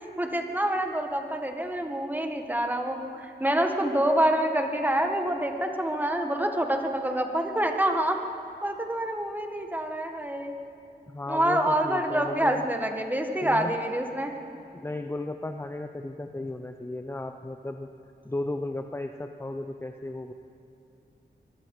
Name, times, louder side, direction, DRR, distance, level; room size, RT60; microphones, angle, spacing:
voice 1, 0.2-8.2 8.6-10.5 11.3-14.3, right 1 dB, 10° right, 4 dB, 1.6 m, -27 dB
voice 2, 11.1-12.6 13.4-13.8 14.7-17.9 18.2-20.3, left 2 dB, 15° left, 6 dB, 0.7 m, -35 dB
24.0 x 22.5 x 4.9 m, 2.7 s
wide cardioid pair, 120°, 18 cm